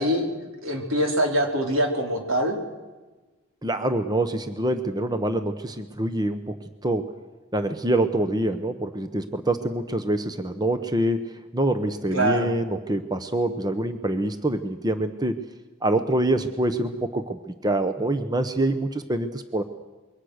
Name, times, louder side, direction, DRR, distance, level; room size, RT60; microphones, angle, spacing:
voice 1, 0.0-2.6 12.1-12.5, right 1 dB, 80° right, 2 dB, 4.2 m, -24 dB
voice 2, 3.6-6.6 6.8-7.1 7.5-15.4 15.8-19.6, right 1 dB, 20° right, 9 dB, 0.9 m, -25 dB
26.0 x 23.0 x 6.5 m, 1.2 s
head